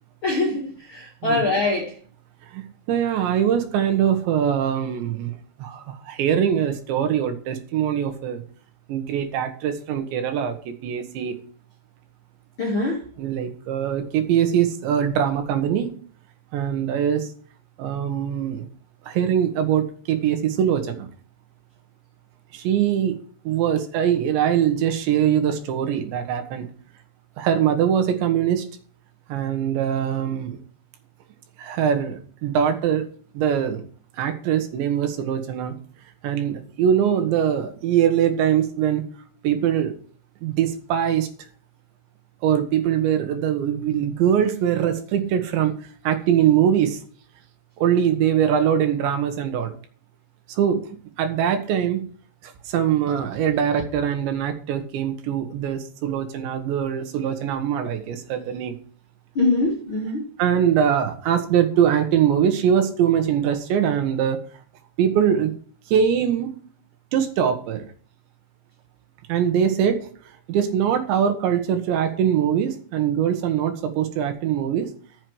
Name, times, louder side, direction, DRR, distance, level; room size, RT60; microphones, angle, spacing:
voice 1, 0.2-1.9 12.6-13.0 59.3-60.2, left 2 dB, 50° left, 1.5 m, -23 dB
voice 2, 2.5-5.3 5.6-8.4 8.9-10.6 10.8-11.4 13.2-15.9 16.5-17.3 17.8-18.7 19.1-21.1 22.5-23.2 23.5-26.7 27.4-28.7 29.3-30.6 31.6-33.1 33.4-33.8 34.2-35.8 36.2-39.0 39.4-39.9 40.4-41.3 42.4-47.0 47.8-49.7 50.5-50.8 51.2-52.1 52.7-58.8 60.4-64.4 65.0-65.6 65.9-66.6 67.1-67.9 69.3-70.0 70.5-74.9, right 9 dB, 75° right, 3.6 m, -22 dB
14.0 x 7.8 x 4.9 m
omnidirectional pair, 5.5 m